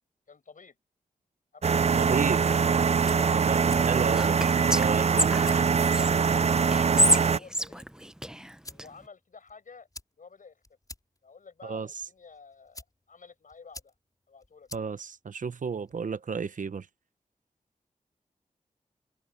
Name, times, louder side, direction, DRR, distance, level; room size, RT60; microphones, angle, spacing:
voice 1, 0.3-0.8 1.5-2.6 3.1-3.3 3.7-4.0 5.3-7.9 8.6-9.9 10.2-10.6 11.2-13.9 14.3-14.8, left 5 dB, 70° left, 7.2 m, -51 dB
sound 1, 1.6-7.4, right 6 dB, 50° right, 0.5 m, -23 dB
voice 2, 2.0-2.4 3.3-4.4 4.7-5.6 11.6-11.9 14.7-16.9, right 5 dB, 70° right, 1.0 m, -32 dB
Whispering, 4.1-6.1 6.7-8.9, right 1 dB, 5° right, 0.9 m, -27 dB
sound 2, 8.2-16.1, left 2 dB, 25° left, 5.4 m, -51 dB
cardioid pair, 55°, 14 cm